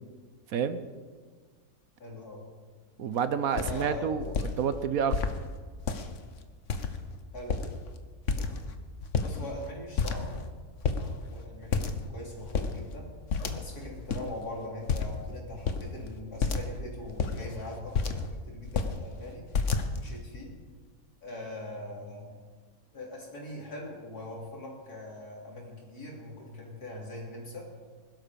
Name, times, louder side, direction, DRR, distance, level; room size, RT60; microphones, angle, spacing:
voice 1, 2.0-2.5 3.5-4.1 7.3-7.6 9.2-10.2 10.9-13.1 13.5-18.2 18.5-19.4 19.9-20.5 21.2-22.4 22.9-27.7, left 1 dB, 75° left, -2 dB, 4.3 m, -41 dB
voice 2, 3.0-4.3 4.6-5.1, right 7 dB, 65° right, 11 dB, 1.2 m, -28 dB
sound 1, 3.1-3.2 3.6-3.8 4.2-4.5 5.1-5.3 5.8-6.2 6.7-7.1 7.4-7.9 8.3-8.7 9.0-9.7 10.0-10.5 10.8-11.0 11.7-12.1 12.4-12.7 13.3-13.8 14.1-14.2 14.9-15.2 15.6-15.9 16.4-16.7 17.1-18.3 18.6-19.0 19.5-20.1, left 5 dB, 55° left, 1.3 m, -30 dB
21.0 x 12.5 x 5.3 m, 1.5 s
omnidirectional pair, 1.7 m